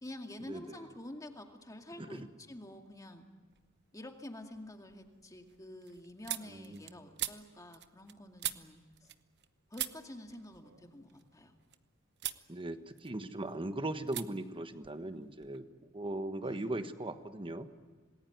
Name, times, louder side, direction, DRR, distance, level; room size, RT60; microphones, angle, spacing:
voice 1, 0.0-3.2 3.9-9.1 9.7-11.5 16.4-16.7, left 1 dB, 15° left, 4 dB, 2.2 m, -48 dB
sound 1, 3.5-4.0 4.4-9.5 9.7-11.8 12.2-12.5 12.8-13.6 14.1-14.3 14.5-15.6, right 13 dB, 55° right, 1.0 m, -43 dB
voice 2, 6.5-6.8 12.5-17.7, right 1 dB, 25° right, 10 dB, 1.3 m, -39 dB
27.0 x 20.0 x 9.4 m, 1.4 s
head